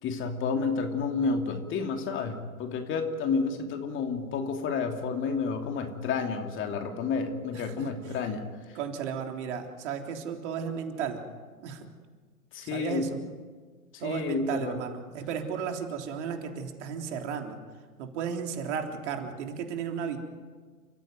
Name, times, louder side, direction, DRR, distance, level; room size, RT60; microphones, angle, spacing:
voice 1, 0.0-8.8 12.5-13.1 13.9-14.8, left 5 dB, 25° left, 5 dB, 2.8 m, -30 dB
voice 2, 7.5-7.9 8.8-11.2 11.6-11.9 12.6-13.2 14.0-17.6 18.0-20.2, right 7 dB, 50° right, 4 dB, 3.6 m, -34 dB
29.5 x 15.5 x 9.4 m, 1.5 s
figure-of-eight pair, 110°, 44 cm